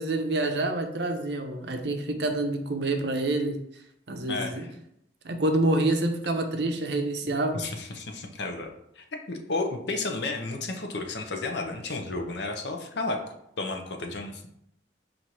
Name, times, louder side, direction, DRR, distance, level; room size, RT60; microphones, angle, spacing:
voice 1, 0.0-3.6 4.1-4.7 5.2-7.6, right 2 dB, 60° right, 5 dB, 0.6 m, -27 dB
voice 2, 4.3-4.7 7.5-8.7 9.0-14.4, left 3 dB, 60° left, 4 dB, 0.6 m, -32 dB
4.3 x 2.6 x 4.5 m, 0.76 s
head